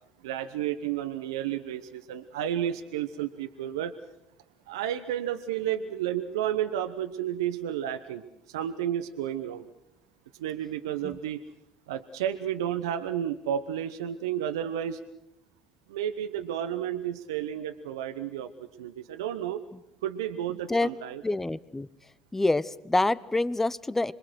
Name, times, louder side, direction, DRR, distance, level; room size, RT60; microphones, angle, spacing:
voice 1, 0.2-3.9 4.7-9.7 10.4-11.4 11.9-15.0 15.9-19.6 20.0-21.2, right 10 dB, 85° right, 9 dB, 0.9 m, -32 dB
voice 2, 21.2-21.9 22.3-24.1, left 2 dB, 15° left, 17 dB, 1.0 m, -26 dB
26.5 x 21.5 x 6.3 m, 0.86 s
hypercardioid pair, 65°, 2 cm